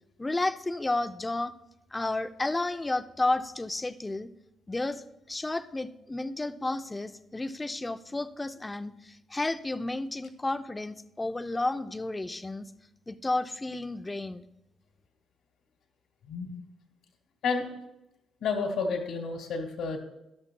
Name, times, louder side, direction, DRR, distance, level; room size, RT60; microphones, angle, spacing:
voice 1, 0.2-1.5 1.9-4.3 4.7-12.7 13.1-14.4, left 2 dB, 15° left, 11 dB, 0.5 m, -32 dB
voice 2, 16.3-16.6 17.4-17.7 18.4-20.0, left 4 dB, 80° left, 3 dB, 1.7 m, -30 dB
14.0 x 11.5 x 2.3 m, 0.91 s
cardioid pair, 90°, 0 cm